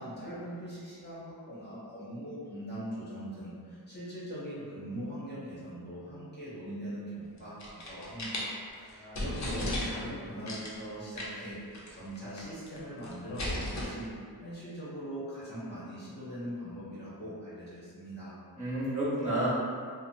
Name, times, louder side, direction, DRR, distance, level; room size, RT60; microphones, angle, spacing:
voice 1, 0.0-8.5 8.8-14.1 14.4-18.4, equal, 25° left, -11 dB, 0.9 m, -41 dB
sound 1, 7.4-8.5 8.9-9.0 9.2-10.1 10.5-10.8 11.2-11.5 11.7-11.9 12.2-12.8 13.0-13.9, left 1 dB, 45° left, 0.5 m, -35 dB
voice 2, 8.7-9.2 9.5-9.6 18.6-19.5, right 1 dB, 20° right, -11 dB, 1.1 m, -32 dB
2.8 x 2.0 x 2.7 m, 2.1 s
wide cardioid pair, 105°, 39 cm